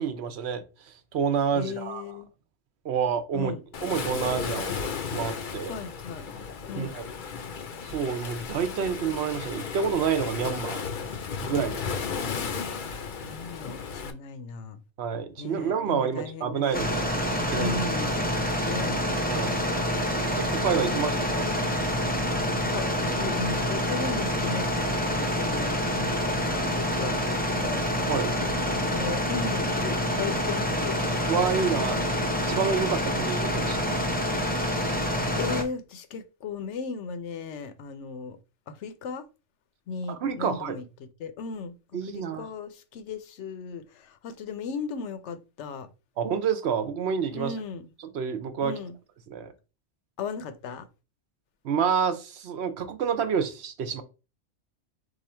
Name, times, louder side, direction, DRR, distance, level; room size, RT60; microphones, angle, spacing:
voice 1, 0.0-2.0 2.8-3.5 3.8-4.7 5.1-5.7 6.8-7.1 7.8-10.8 11.4-12.0 15.0-17.1 17.4-17.8 19.3-19.5 20.4-21.4 28.1-28.3 31.3-32.0 32.5-34.0 40.1-40.8 41.9-42.5 46.2-47.5 48.1-48.7 49.3-49.5 51.6-54.0, right 7 dB, 70° right, 0.9 m, -28 dB
voice 2, 1.5-2.3 3.3-3.6 5.7-6.3 6.7-6.9 12.0-14.8 15.4-16.9 17.5-18.3 18.6-20.2 20.9-21.7 22.6-27.8 28.4-31.0 31.7-32.2 35.3-38.4 38.7-39.3 39.9-45.9 47.3-47.9 48.6-49.0 50.2-50.9, left 5 dB, 80° left, 1.0 m, -37 dB
Waves surf, 3.7-14.1, left 6 dB, 55° left, 0.6 m, -34 dB
sound 1, 16.7-35.6, equal, 10° left, 0.6 m, -27 dB
4.7 x 2.5 x 4.3 m
omnidirectional pair, 1.2 m